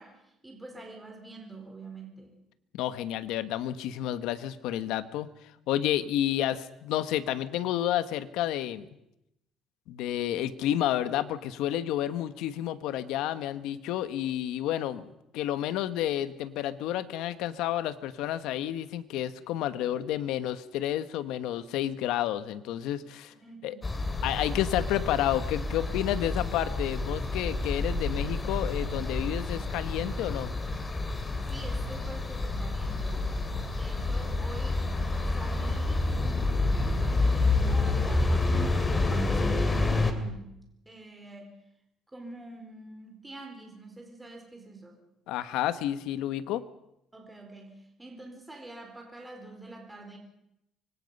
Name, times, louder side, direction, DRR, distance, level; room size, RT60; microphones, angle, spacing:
voice 1, 0.0-2.3 23.4-24.0 31.5-34.8 35.3-40.6 40.9-41.6 42.1-45.0 47.1-50.2, right 2 dB, 10° right, 2 dB, 4.1 m, -46 dB
voice 2, 2.7-5.3 5.7-8.8 9.9-15.1 15.3-23.3 23.6-23.7 24.2-30.5 45.3-46.6, left 12 dB, 80° left, 12 dB, 1.3 m, -30 dB
sound 1, 23.8-40.1, left 2 dB, 20° left, 2.7 m, -29 dB
25.0 x 24.0 x 5.5 m, 0.85 s
cardioid pair, 135°, 0 cm